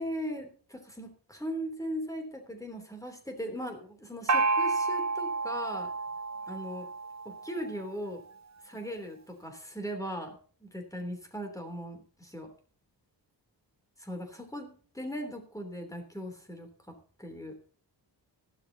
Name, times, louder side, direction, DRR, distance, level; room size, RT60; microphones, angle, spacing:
voice 1, 0.0-5.9 6.5-6.9 7.2-8.2 8.6-12.5 14.0-17.6, equal, 5° left, 5 dB, 3.2 m, -39 dB
Gong, 4.3-7.8, right 4 dB, 40° right, 0.8 m, -30 dB
16.0 x 12.0 x 2.9 m, 0.42 s
wide cardioid pair, 175°, 43 cm